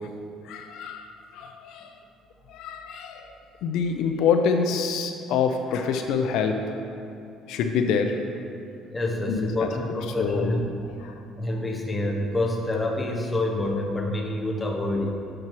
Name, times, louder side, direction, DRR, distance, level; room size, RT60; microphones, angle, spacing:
voice 1, 0.4-1.9 2.5-3.3 3.6-6.8 7.4-8.2 9.3-9.7 10.2-10.6 11.0-11.1, left 6 dB, 75° left, 5 dB, 0.5 m, -26 dB
voice 2, 8.9-10.6 11.4-15.1, left 1 dB, 15° left, -1 dB, 0.8 m, -27 dB
8.7 x 6.1 x 3.0 m, 2.4 s
cardioid pair, 145°, 0 cm